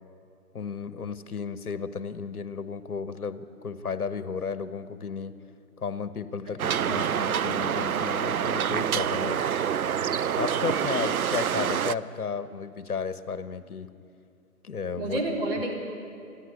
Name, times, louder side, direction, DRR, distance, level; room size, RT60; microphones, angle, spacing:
voice 1, 0.5-5.4 5.8-9.4 10.4-13.9 14.6-15.2, left 5 dB, 70° left, 13 dB, 1.3 m, -33 dB
sound 1, 6.6-11.9, right 8 dB, 70° right, 0.6 m, -27 dB
voice 2, 6.8-7.4 15.0-15.7, right 1 dB, 35° right, -1 dB, 3.6 m, -31 dB
28.0 x 11.0 x 9.5 m, 2.5 s
hypercardioid pair, 165°, 46 cm